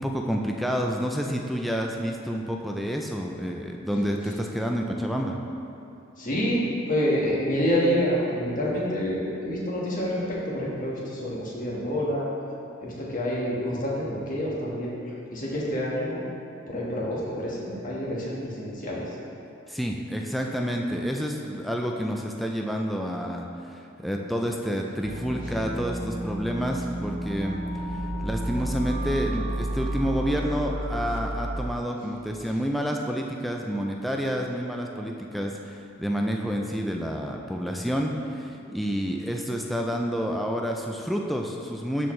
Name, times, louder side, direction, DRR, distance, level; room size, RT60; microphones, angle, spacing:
voice 1, 0.0-5.4 19.7-27.6 28.2-42.1, equal, ahead, 0 dB, 0.3 m, -29 dB
voice 2, 6.2-12.3 12.8-15.0 15.3-16.2 16.7-19.0, equal, 45° left, -5 dB, 1.4 m, -27 dB
sound 1, 25.0-31.6, right 1 dB, 80° right, 0.8 m, -31 dB
12.0 x 4.4 x 3.2 m, 2.7 s
head